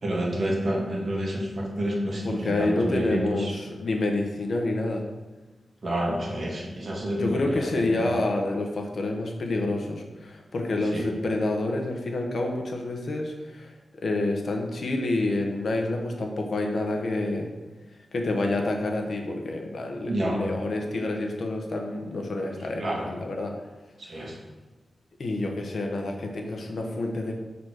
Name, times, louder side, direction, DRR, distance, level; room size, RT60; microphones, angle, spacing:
voice 1, 0.0-3.5 5.8-8.0 10.9-11.1 20.0-20.4 22.8-23.1 24.1-24.4, right 1 dB, 50° right, -2 dB, 1.7 m, -29 dB
voice 2, 2.2-5.0 7.2-17.5 18.1-23.5 25.2-27.3, left 2 dB, 65° left, 2 dB, 1.0 m, -28 dB
6.1 x 4.1 x 6.4 m, 1.2 s
wide cardioid pair, 105°, 0 cm